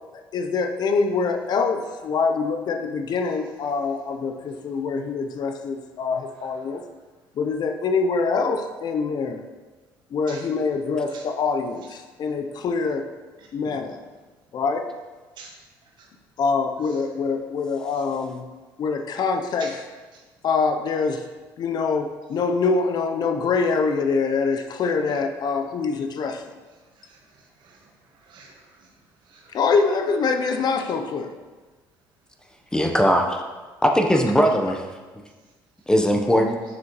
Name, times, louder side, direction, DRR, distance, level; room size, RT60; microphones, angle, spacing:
voice 1, 0.3-6.8 7.4-9.4 10.1-13.1 13.5-14.0 14.5-14.9 16.4-18.4 18.8-19.7 20.4-21.2 21.6-26.4 29.5-31.3, left 4 dB, 55° left, 6 dB, 0.7 m, -24 dB
voice 2, 13.4-13.7 15.4-15.5 16.0-16.1 19.6-19.7 20.1-20.2 25.1-25.2 27.0-27.8 28.2-28.9 29.3-29.6 30.3-30.5, right 4 dB, 60° right, 0 dB, 1.5 m, -45 dB
voice 3, 32.7-33.4 33.8-34.8 35.9-36.6, equal, 10° left, 3 dB, 0.9 m, -19 dB
7.6 x 6.1 x 3.1 m, 1.3 s
supercardioid pair, 80°, 9 cm